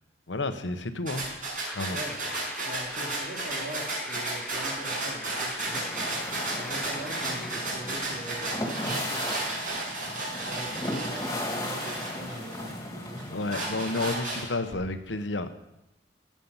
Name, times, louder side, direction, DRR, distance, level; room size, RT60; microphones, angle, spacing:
voice 1, 0.3-1.3 1.7-2.0 13.3-15.5, left 2 dB, 85° left, 9 dB, 1.0 m, -31 dB
sound 1, 1.1-12.7 13.2-14.7, right 2 dB, 45° right, 5.9 m, -33 dB
sound 2, 1.6-7.6, left 1 dB, ahead, 0.8 m, -43 dB
voice 2, 2.6-6.1 6.6-8.5 9.0-9.5 10.0-13.3, equal, 60° right, -1 dB, 2.9 m, -42 dB
sound 3, 5.7-14.1, left 1 dB, 20° left, 1.9 m, -36 dB
16.5 x 7.5 x 5.6 m, 0.91 s
head